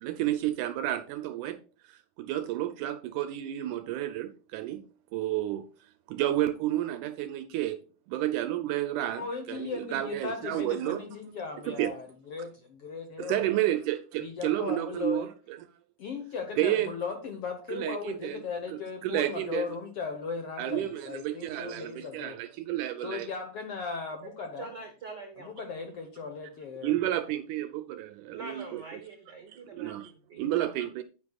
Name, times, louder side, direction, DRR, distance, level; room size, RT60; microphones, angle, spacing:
voice 1, 0.0-4.8 5.1-7.8 8.1-11.0 11.6-11.9 13.2-15.6 16.6-16.9 17.7-18.4 18.7-19.7 20.6-23.3 26.8-29.0 29.5-30.1 30.4-31.0, right 13 dB, 80° right, 1.9 m, -31 dB
voice 2, 9.2-13.5 14.2-15.3 16.0-22.4 23.0-24.7 25.4-27.0, left 5 dB, 60° left, 1.6 m, -37 dB
voice 3, 24.2-25.6 26.9-27.1 28.3-30.7, right 4 dB, 65° right, 1.0 m, -45 dB
9.6 x 9.5 x 2.4 m
omnidirectional pair, 3.9 m